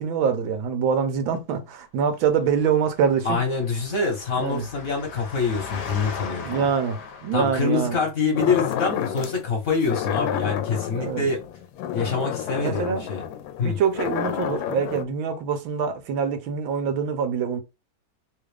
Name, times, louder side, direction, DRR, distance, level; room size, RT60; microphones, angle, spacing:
voice 1, 0.0-3.4 4.3-4.6 6.4-8.0 10.2-10.3 10.9-11.3 12.6-13.1 13.6-17.6, right 7 dB, 85° right, 1.5 m, -25 dB
Engine, 2.3-8.0, left 5 dB, 65° left, 1.3 m, -39 dB
voice 2, 3.2-6.7 7.3-11.4 11.9-13.2 13.6-13.8, left 4 dB, 50° left, 1.4 m, -25 dB
sound 1, 8.4-9.4 9.8-15.0, left 9 dB, 85° left, 1.3 m, -30 dB
3.5 x 2.4 x 3.3 m
omnidirectional pair, 2.1 m